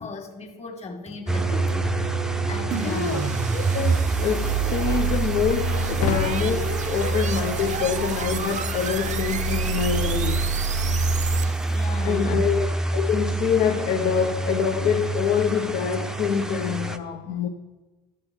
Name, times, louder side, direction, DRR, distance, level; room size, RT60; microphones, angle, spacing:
voice 1, 0.0-1.9 2.2-3.1 11.0-11.1 11.7-12.4, left 3 dB, 30° left, 1.8 m, -36 dB
sound 1, 1.3-17.0, right 2 dB, 5° right, 0.7 m, -28 dB
sound 2, 2.7-11.8, right 7 dB, 35° right, 0.7 m, -28 dB
voice 2, 2.8-10.5 12.0-17.5, left 7 dB, 55° left, 0.9 m, -26 dB
sound 3, 5.9-8.4, left 9 dB, 80° left, 0.6 m, -32 dB
12.0 x 6.2 x 4.5 m
hypercardioid pair, 80°, 21 cm